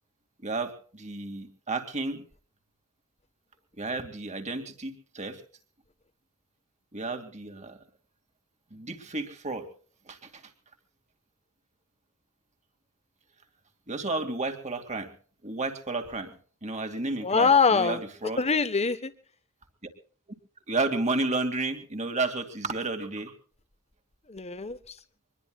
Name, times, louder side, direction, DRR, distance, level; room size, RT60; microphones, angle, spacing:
voice 1, 0.4-2.2 3.8-5.4 6.9-7.8 8.7-9.7 10.1-10.3 13.9-15.1 15.4-16.3 16.6-18.4 20.7-23.3, right 3 dB, 30° right, 5 dB, 2.5 m, -32 dB
voice 2, 17.2-18.0 18.4-19.1 24.3-24.8, left 5 dB, 30° left, 12 dB, 1.2 m, -23 dB
24.5 x 21.0 x 2.4 m, 0.43 s
head